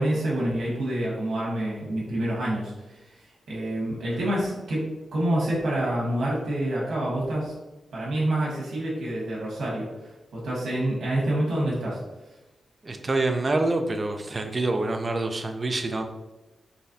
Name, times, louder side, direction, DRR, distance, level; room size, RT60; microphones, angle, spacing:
voice 1, 0.0-7.5 7.9-12.0, right 1 dB, 90° right, -5 dB, 1.1 m, -27 dB
voice 2, 12.8-16.0, right 2 dB, 30° right, 5 dB, 0.3 m, -26 dB
4.0 x 3.1 x 2.7 m, 1.0 s
wide cardioid pair, 160°, 0 cm